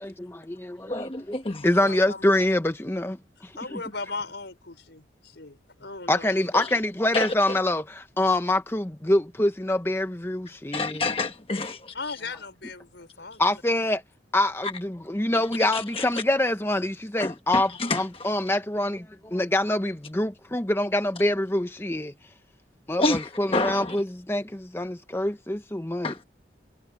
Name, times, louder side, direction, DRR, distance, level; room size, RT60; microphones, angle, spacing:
voice 1, 0.0-1.4 1.6-3.2 3.4-3.8 6.1-11.1 13.4-14.0 14.3-22.1 22.9-26.1, left 1 dB, 15° left, 0.8 m, -25 dB
voice 2, 0.9-1.6 7.1-7.3 10.7-11.9 15.6-16.0 17.2-18.0 23.0-24.0 26.0-26.2, left 2 dB, 30° left, 1.2 m, -28 dB
voice 3, 1.6-2.3 3.6-6.6 11.9-13.4, left 3 dB, 80° left, 4.9 m, -38 dB
head